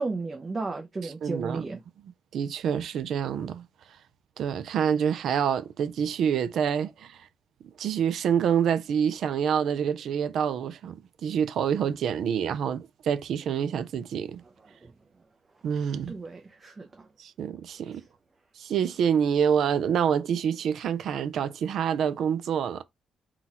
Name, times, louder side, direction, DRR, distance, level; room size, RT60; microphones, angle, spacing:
voice 1, 0.0-1.8 14.8-14.9 16.1-17.1, right 3 dB, 30° right, 0.7 m, -34 dB
voice 2, 1.0-1.6 2.3-3.7 4.4-7.3 7.8-14.4 15.6-16.1 17.2-18.0 18.6-22.8, right 8 dB, 70° right, 0.5 m, -27 dB
3.9 x 2.4 x 4.2 m
cardioid pair, 90°, 0 cm